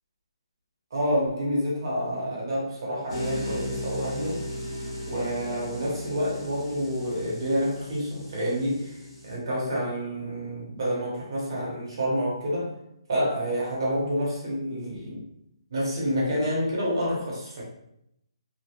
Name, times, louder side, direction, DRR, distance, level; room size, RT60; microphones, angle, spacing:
voice 1, 0.9-4.4 5.1-12.7 13.1-15.2 15.7-17.6, equal, 50° right, -5 dB, 1.2 m, -28 dB
sound 1, 3.1-9.3, equal, 10° left, 0.8 m, -36 dB
3.0 x 2.1 x 2.9 m, 0.80 s
hypercardioid pair, 170°, 3 cm